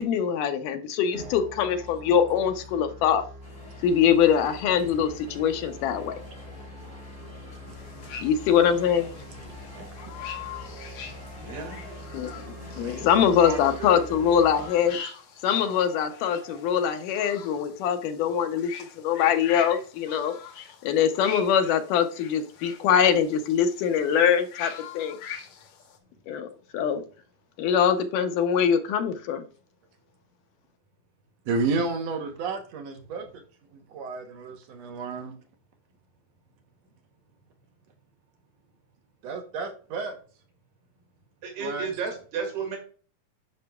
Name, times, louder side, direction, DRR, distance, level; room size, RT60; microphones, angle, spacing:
voice 1, 0.0-3.2 3.8-6.1 8.2-9.1 12.1-12.3 12.8-15.0 15.4-18.7 19.0-20.3 20.8-25.2 26.3-26.5 26.7-27.0 27.6-29.4, left 8 dB, 80° left, 8 dB, 2.3 m, -23 dB
Musical instrument, 1.1-14.6, equal, 45° right, 1.7 m, -44 dB
sound 1, 3.4-15.0, left 2 dB, 25° left, 0.9 m, -47 dB
sound 2, 7.7-26.0, left 7 dB, 65° left, 1.7 m, -43 dB
voice 2, 11.4-11.8 12.8-13.1 13.4-14.1 41.4-42.8, right 5 dB, 90° right, 0 dB, 4.2 m, -34 dB
voice 3, 31.5-33.4 33.7-35.4 39.2-40.2 41.6-41.9, right 3 dB, 65° right, 5 dB, 1.8 m, -31 dB
10.5 x 6.1 x 2.3 m, 0.40 s
omnidirectional pair, 3.7 m